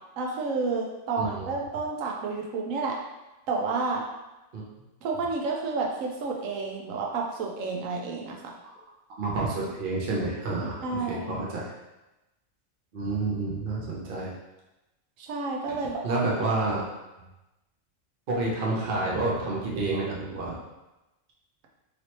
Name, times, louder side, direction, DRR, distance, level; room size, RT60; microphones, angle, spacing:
voice 1, 0.2-3.0 3.5-4.0 5.0-8.4 10.8-11.4 15.2-16.2, right 4 dB, 90° right, -1 dB, 1.0 m, -30 dB
voice 2, 1.2-1.5 4.5-4.6 8.6-8.7 9.2-11.7 12.9-14.3 15.7-16.8 18.3-20.6, right 2 dB, 50° right, -4 dB, 0.7 m, -29 dB
3.1 x 2.8 x 2.9 m, 1.0 s
omnidirectional pair, 1.3 m